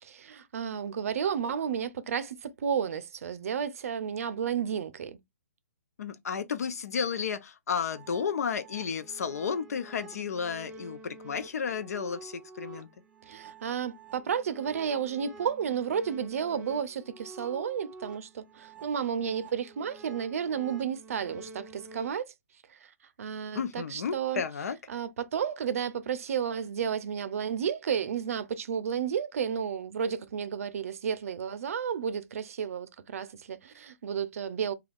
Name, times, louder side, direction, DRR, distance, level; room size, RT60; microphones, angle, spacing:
voice 1, 0.0-5.2 13.3-22.3 22.7-22.8 23.2-24.4 24.9-34.7, right 7 dB, 65° right, 0.5 m, -32 dB
voice 2, 6.0-12.9 23.5-24.8, left 6 dB, 75° left, 0.6 m, -32 dB
sound 1, 7.8-22.1, right 3 dB, 10° right, 0.3 m, -49 dB
2.3 x 2.3 x 3.4 m
hypercardioid pair, 160°, 8 cm